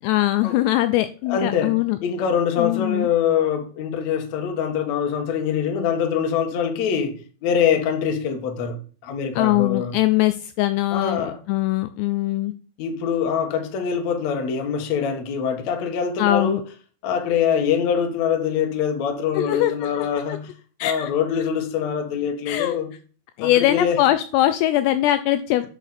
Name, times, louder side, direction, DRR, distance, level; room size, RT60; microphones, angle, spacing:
voice 1, 0.0-2.0 2.6-3.1 9.4-12.5 16.2-16.6 19.3-20.4 20.8-21.1 22.5-22.8 23.4-25.7, left 15 dB, 85° left, 2.5 m, -21 dB
voice 2, 1.3-1.7 2.0-10.0 10.9-11.4 12.8-16.6 17.0-20.5 20.8-22.9 23.4-24.0, left 7 dB, 65° left, 1.8 m, -24 dB
11.0 x 5.9 x 4.2 m
omnidirectional pair, 5.2 m